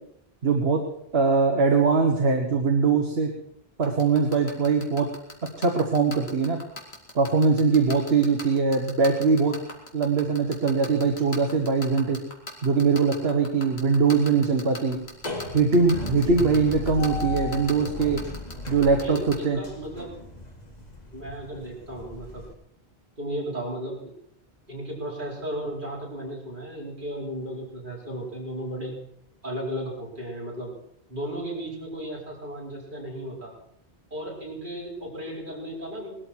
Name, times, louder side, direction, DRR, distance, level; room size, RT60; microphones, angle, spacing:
voice 1, 0.4-0.8 1.1-3.3 3.8-5.1 5.6-6.6 7.1-9.6 9.9-12.2 12.6-15.0 15.5-18.2 18.7-19.2 19.4-19.6, right 4 dB, 70° right, 3 dB, 1.6 m, -22 dB
sound 1, 3.8-19.3, left 2 dB, 75° left, 2.7 m, -37 dB
sound 2, 14.9-22.5, left 2 dB, 40° left, 2.1 m, -36 dB
voice 2, 18.9-20.1 21.1-22.4 23.2-24.1 24.7-28.9 29.4-30.7 31.1-33.5 34.1-36.2, right 1 dB, 50° right, -4 dB, 5.2 m, -35 dB
19.5 x 13.0 x 4.6 m, 0.73 s
omnidirectional pair, 1.1 m